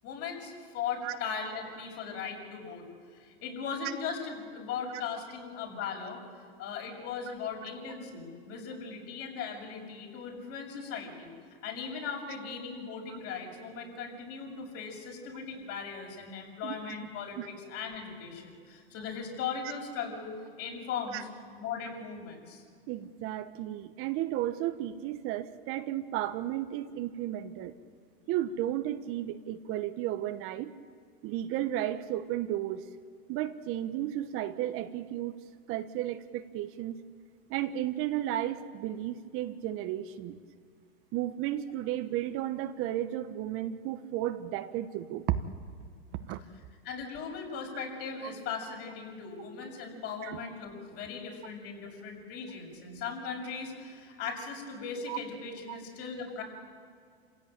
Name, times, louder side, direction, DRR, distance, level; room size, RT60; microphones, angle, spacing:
voice 1, 0.0-2.8 3.1-6.2 6.6-11.3 11.6-21.2 21.6-22.6 46.8-56.4, left 6 dB, 50° left, 1 dB, 7.1 m, -38 dB
voice 2, 16.6-17.0 17.4-17.5 21.1-21.2 22.9-27.7 28.3-30.7 31.2-32.8 33.3-35.4 35.7-37.0 37.5-40.4 41.1-45.4 46.2-46.4 50.2-50.4 55.1-55.2 55.7-55.8, right 13 dB, 45° right, 10 dB, 1.1 m, -33 dB
27.5 x 16.5 x 9.0 m, 2.1 s
hypercardioid pair, 120°, 31 cm